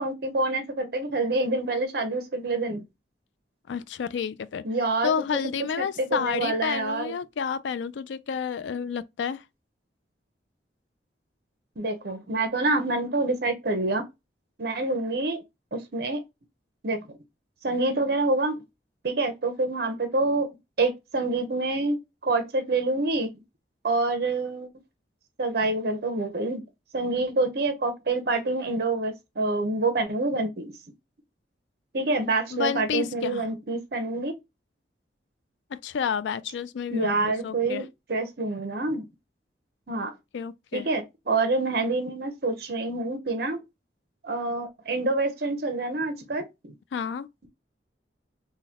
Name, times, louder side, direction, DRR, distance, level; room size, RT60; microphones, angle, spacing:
voice 1, 0.0-2.8 4.6-5.1 6.0-7.1 11.8-14.0 14.6-15.4 15.7-16.2 16.8-17.0 17.6-18.6 19.0-20.5 20.8-23.3 23.8-24.7 25.4-26.6 26.9-30.7 31.9-34.3 36.9-39.0 39.9-40.1 40.7-43.6 44.2-46.7, right 2 dB, 55° right, 0.7 m, -27 dB
voice 2, 3.7-4.6 5.0-9.4 32.5-33.4 35.7-37.8 40.3-40.9 46.9-47.3, left 7 dB, 75° left, 0.3 m, -30 dB
3.7 x 2.2 x 2.9 m
head